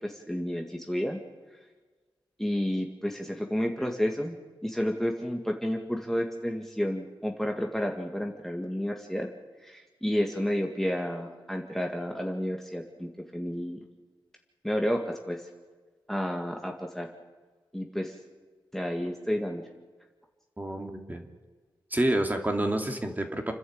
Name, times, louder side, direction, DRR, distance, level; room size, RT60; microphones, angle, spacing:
voice 1, 0.0-1.2 2.4-4.4 4.6-9.3 9.6-13.8 14.6-15.4 16.1-17.1 17.7-18.2 18.7-19.6, equal, 5° left, 2 dB, 1.9 m, -31 dB
voice 2, 20.6-21.2 21.9-23.5, right 1 dB, 20° right, 4 dB, 2.6 m, -28 dB
29.0 x 11.0 x 8.8 m, 1.4 s
wide cardioid pair, 75°, 9 cm